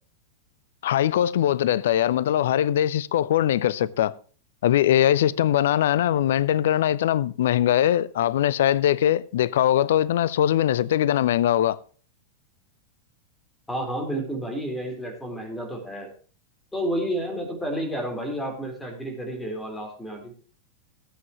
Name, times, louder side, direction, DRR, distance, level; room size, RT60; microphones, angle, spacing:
voice 1, 0.8-4.1 4.6-11.8, left 11 dB, 60° left, 0.5 m, -21 dB
voice 2, 13.7-16.1 16.7-20.3, right 1 dB, 10° left, 4.0 m, -30 dB
17.0 x 8.5 x 3.0 m
figure-of-eight pair, 90°, 0 cm